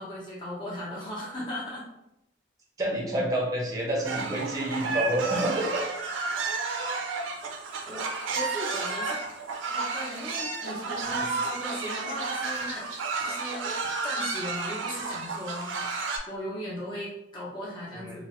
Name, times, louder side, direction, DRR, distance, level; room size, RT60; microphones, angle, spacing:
voice 1, 0.0-1.8 7.8-9.2 9.7-12.9 13.2-15.7 16.3-18.2, left 1 dB, 25° left, -7 dB, 0.7 m, -37 dB
voice 2, 2.8-5.8 17.9-18.2, right 1 dB, 20° right, -2 dB, 0.6 m, -28 dB
sound 1, 4.0-16.2, right 4 dB, 85° right, 0.4 m, -32 dB
3.0 x 2.0 x 3.0 m, 0.85 s
head